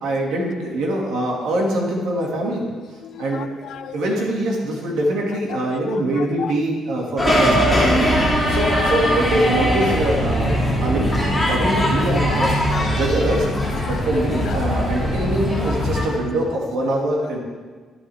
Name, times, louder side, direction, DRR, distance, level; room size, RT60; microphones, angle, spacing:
voice 1, 0.0-2.6 3.2-3.5 3.9-7.9 8.5-11.1 11.5-13.5 13.8-17.4, right 1 dB, 90° right, -1 dB, 2.3 m, -23 dB
voice 2, 3.0-4.0 5.5-6.6 7.3-7.4 8.0-8.6 12.9-13.1 13.7-14.0 14.5-14.8 16.9-17.0, left 8 dB, 60° left, 12 dB, 0.5 m, -36 dB
sound 1, 7.2-16.0, equal, ahead, 2.3 m, -20 dB
11.0 x 10.5 x 3.5 m, 1.5 s
cardioid pair, 165°, 0 cm